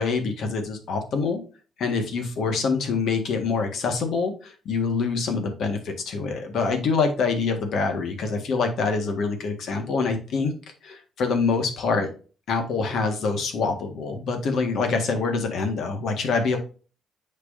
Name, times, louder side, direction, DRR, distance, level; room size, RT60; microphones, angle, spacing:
voice 1, 0.0-1.4 1.8-10.5 10.8-12.1 12.5-16.6, left 4 dB, 70° left, 5 dB, 1.7 m, -25 dB
8.2 x 4.7 x 2.6 m, 0.36 s
cardioid pair, 90°, 0 cm